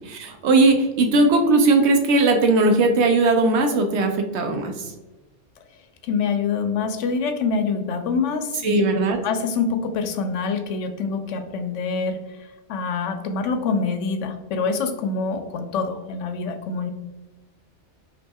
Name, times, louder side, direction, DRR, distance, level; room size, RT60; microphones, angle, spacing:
voice 1, 0.1-4.9 8.6-9.2, right 2 dB, 70° right, 5 dB, 0.9 m, -18 dB
voice 2, 6.0-8.8 9.2-12.2 12.7-16.9, left 5 dB, 85° left, 6 dB, 0.9 m, -25 dB
5.3 x 2.7 x 2.3 m, 1.1 s
omnidirectional pair, 1.2 m